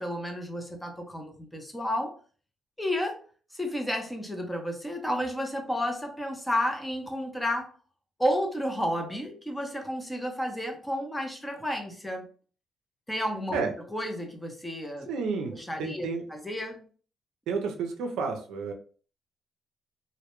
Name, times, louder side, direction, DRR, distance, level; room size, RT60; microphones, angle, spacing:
voice 1, 0.0-2.2 2.8-3.2 3.5-7.7 8.2-12.2 13.1-13.7 13.9-15.1 15.5-16.8, equal, 5° left, 3 dB, 0.6 m, -31 dB
voice 2, 15.1-16.2 17.5-18.7, right 5 dB, 85° right, 4 dB, 0.4 m, -31 dB
2.1 x 2.1 x 2.9 m, 0.40 s
cardioid pair, 90°, 0 cm